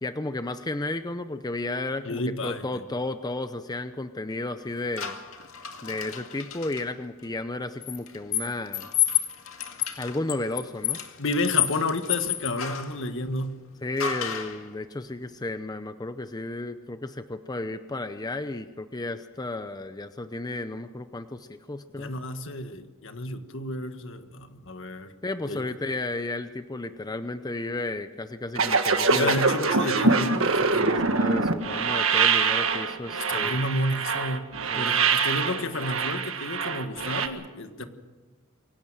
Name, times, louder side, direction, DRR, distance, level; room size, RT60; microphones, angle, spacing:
voice 1, 0.0-5.2 5.8-8.9 10.0-11.0 13.8-22.1 25.2-29.4 30.7-33.7 34.7-35.1 37.8-37.9, left 2 dB, 20° left, 10 dB, 0.7 m, -33 dB
voice 2, 2.1-2.8 11.2-13.7 21.9-25.1 25.5-25.7 29.1-30.8 33.2-34.5 34.7-37.8, left 2 dB, 65° left, 8 dB, 1.6 m, -31 dB
sound 1, 5.0-6.8 7.8-13.0 14.0-14.6, left 11 dB, 85° left, 2.0 m, -30 dB
sound 2, 28.5-37.3, right 4 dB, 75° right, 1.7 m, -24 dB
24.0 x 17.5 x 7.5 m, 1.3 s
head